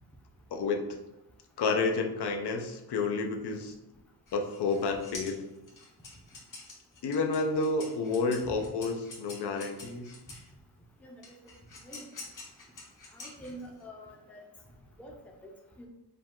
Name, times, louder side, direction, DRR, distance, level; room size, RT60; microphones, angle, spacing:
voice 1, 0.5-0.8 1.6-3.7 4.3-5.4 7.0-10.1, left 4 dB, 70° left, 4 dB, 0.6 m, -30 dB
sound 1, 4.3-10.5 11.2-13.8, left 3 dB, 50° left, 1.1 m, -47 dB
voice 2, 13.1-14.5 15.0-15.1 15.4-15.5 15.8-15.9, equal, 5° left, 0 dB, 0.5 m, -46 dB
4.9 x 2.3 x 3.6 m, 0.96 s
wide cardioid pair, 175°, 42 cm